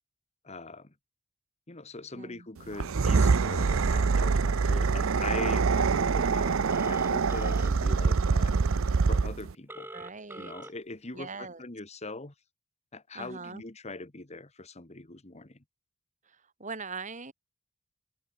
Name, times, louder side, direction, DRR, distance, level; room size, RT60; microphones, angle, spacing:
voice 1, 0.4-0.9 1.7-8.6 9.1-9.9 10.3-12.3 12.9-15.6, left 2 dB, 30° left, 1.7 m, -41 dB
voice 2, 2.1-2.4 9.9-10.5 11.1-11.6 13.1-13.6 16.6-17.3, right 4 dB, 35° right, 2.9 m, -41 dB
sound 1, 2.7-9.5, right 4 dB, 75° right, 0.6 m, -25 dB
Telephone, 6.7-7.7 9.7-10.7, right 2 dB, 10° right, 0.9 m, -43 dB
open air
head